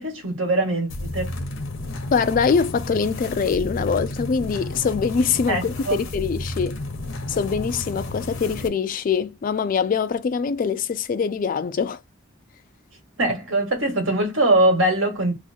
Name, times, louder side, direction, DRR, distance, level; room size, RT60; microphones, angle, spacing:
voice 1, 0.0-1.3 5.5-6.0 13.2-15.3, right 1 dB, 80° right, 1.6 m, -22 dB
sound 1, 0.9-8.7, left 2 dB, 80° left, 0.8 m, -32 dB
voice 2, 2.1-6.8 7.3-12.0, left 5 dB, 45° left, 0.3 m, -23 dB
3.0 x 2.3 x 4.1 m
head